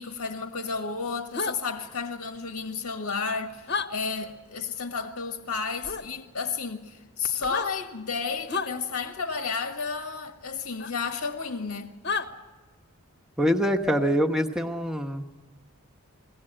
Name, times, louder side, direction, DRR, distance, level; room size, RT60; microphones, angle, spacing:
voice 1, 0.0-11.9, left 5 dB, 85° left, 1.5 m, -32 dB
sound 1, 1.3-1.6 3.7-3.9 5.8-6.0 7.4-7.7 8.5-8.7 10.8-10.9 12.0-12.3, left 4 dB, 50° left, 1.2 m, -29 dB
voice 2, 13.4-15.2, equal, 5° right, 1.1 m, -24 dB
22.0 x 17.5 x 8.9 m
head